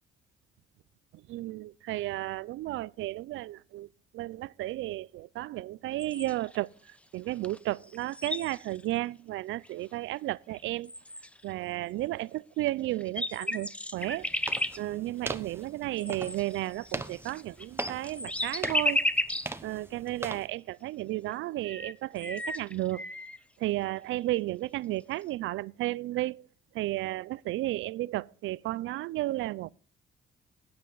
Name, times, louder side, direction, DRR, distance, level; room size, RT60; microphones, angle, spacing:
voice 1, 1.1-3.9 4.1-10.9 11.4-14.3 14.8-19.1 19.6-23.0 23.6-26.5 26.7-29.7, right 16 dB, 80° right, 0.4 m, -33 dB
sound 1, 6.0-6.6 7.4-7.6 7.8-8.9 9.6-9.7 10.5-10.6 10.9-11.5 12.6-12.7 13.0-14.8 16.0-19.5 20.1-20.2 21.3-21.4 21.6-23.4, left 1 dB, 5° left, 0.7 m, -33 dB
sound 2, 14.0-20.5, right 2 dB, 10° right, 1.0 m, -41 dB
12.5 x 9.6 x 3.9 m
cardioid pair, 90°, 20 cm